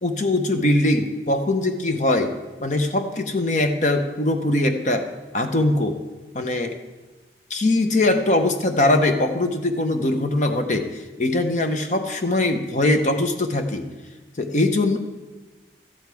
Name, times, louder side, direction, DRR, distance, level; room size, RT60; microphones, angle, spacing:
voice 1, 0.0-2.3 2.6-5.1 5.3-6.0 6.3-6.8 7.5-13.8 14.4-15.0, left 2 dB, 40° left, 6 dB, 0.7 m, -21 dB
13.0 x 8.7 x 4.7 m, 1.2 s
head